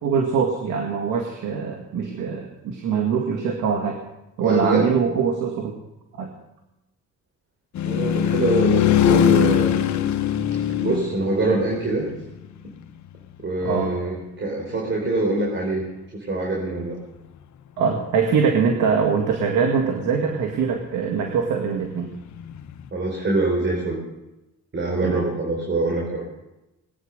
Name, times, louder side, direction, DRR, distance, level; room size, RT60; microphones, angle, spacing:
voice 1, 0.0-4.0 4.4-5.8 6.2-6.3 13.6-13.9 17.8-22.1 25.0-25.2, right 6 dB, 90° right, 2 dB, 2.1 m, -23 dB
voice 2, 4.4-4.9 7.8-9.8 10.8-12.1 13.4-15.8 16.1-17.0 22.9-24.0 24.7-26.2, right 2 dB, 40° right, -1 dB, 4.3 m, -24 dB
sound 1, 7.8-12.7 22.2-22.9, left 9 dB, 70° left, 1.1 m, -21 dB
20.0 x 9.6 x 6.6 m, 0.96 s
cardioid pair, 90°, 30 cm